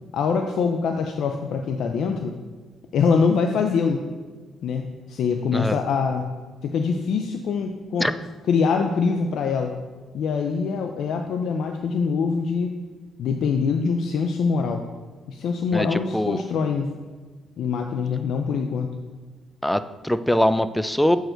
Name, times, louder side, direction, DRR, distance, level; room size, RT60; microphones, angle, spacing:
voice 1, 0.1-2.3 2.9-4.0 4.6-6.3 6.6-8.1 8.5-9.7 10.1-12.8 13.2-14.9 15.3-16.9 17.6-18.9, left 5 dB, 70° left, 4 dB, 0.5 m, -24 dB
voice 2, 15.7-16.4 19.6-21.2, left 1 dB, 5° left, 12 dB, 0.3 m, -22 dB
7.8 x 4.7 x 4.4 m, 1.4 s
cardioid pair, 90°, 0 cm